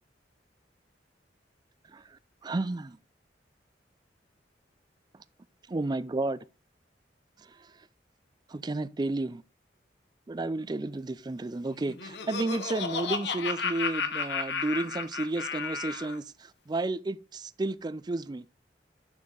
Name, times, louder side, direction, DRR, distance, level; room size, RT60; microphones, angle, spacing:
voice 1, 1.9-3.0 5.7-6.4 7.4-7.7 8.5-9.4 10.3-18.4, right 2 dB, 25° right, 0.4 m, -32 dB
Laughter, 11.7-16.2, left 5 dB, 70° left, 1.0 m, -33 dB
8.6 x 6.4 x 3.8 m
head